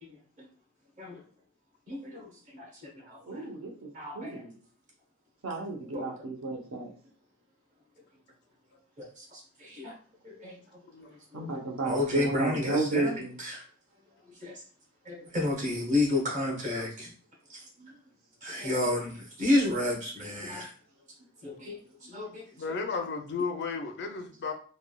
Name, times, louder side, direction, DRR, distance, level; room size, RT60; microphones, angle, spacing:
voice 1, 0.0-0.4 1.0-1.2 1.9-3.5 3.9-4.4 5.9-6.1 9.0-9.9 10.2-10.6 11.0-11.5 11.8-13.6 14.3-14.6 15.0-17.1 17.5-17.6 18.4-20.7 21.4-22.5, left 2 dB, 35° right, 0 dB, 0.9 m, -32 dB
voice 2, 3.3-4.5 5.4-6.9 11.3-13.3 17.8-17.9, right 3 dB, 70° right, 1 dB, 0.7 m, -33 dB
voice 3, 22.6-24.5, left 4 dB, 55° left, 5 dB, 0.4 m, -34 dB
3.2 x 2.2 x 2.2 m, 0.43 s
head